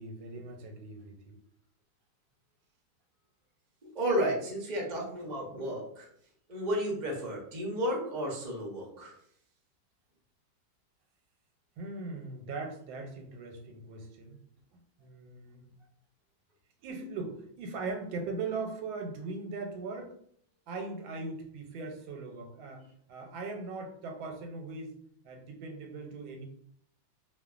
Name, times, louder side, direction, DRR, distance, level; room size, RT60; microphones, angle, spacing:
voice 1, 0.0-1.4 11.8-14.4 15.0-15.7 16.8-20.1 20.7-25.0 25.2-26.5, right 3 dB, 90° right, 3 dB, 1.4 m, -40 dB
voice 2, 3.9-6.1 6.5-9.1, equal, 65° right, -3 dB, 0.4 m, -32 dB
3.0 x 2.1 x 2.3 m, 0.64 s
omnidirectional pair, 2.1 m